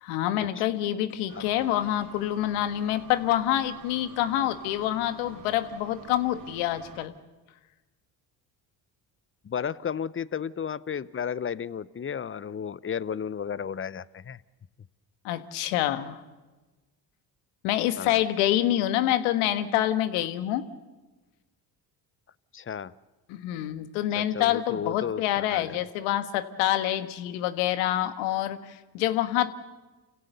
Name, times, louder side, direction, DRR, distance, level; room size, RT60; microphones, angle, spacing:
voice 1, 0.0-7.1 15.2-16.2 17.6-20.6 23.3-29.5, left 12 dB, 75° left, 10 dB, 1.6 m, -27 dB
sound 1, 1.3-7.1, right 6 dB, 65° right, 3.0 m, -49 dB
voice 2, 9.4-14.4 18.0-18.2 22.5-22.9 24.1-25.8, left 7 dB, 25° left, 19 dB, 0.8 m, -33 dB
29.0 x 16.5 x 6.8 m, 1.2 s
hypercardioid pair, 60°, 49 cm